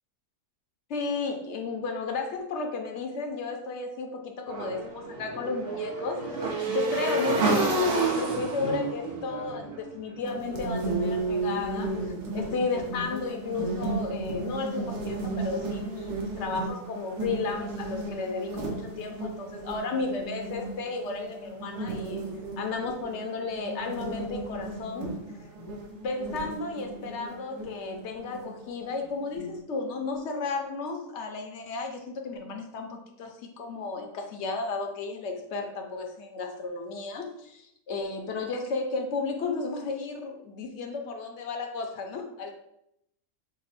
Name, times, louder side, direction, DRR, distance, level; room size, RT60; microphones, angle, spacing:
voice 1, 0.9-22.2 22.6-25.1 26.0-32.9 33.2-42.5, left 4 dB, 60° left, 3 dB, 0.8 m, -33 dB
Motorcycle / Engine, 4.5-10.6, right 2 dB, 50° right, 0.8 m, -29 dB
sound 1, 10.2-29.6, right 2 dB, 80° right, 1.3 m, -35 dB
5.1 x 2.1 x 4.0 m, 0.78 s
omnidirectional pair, 1.7 m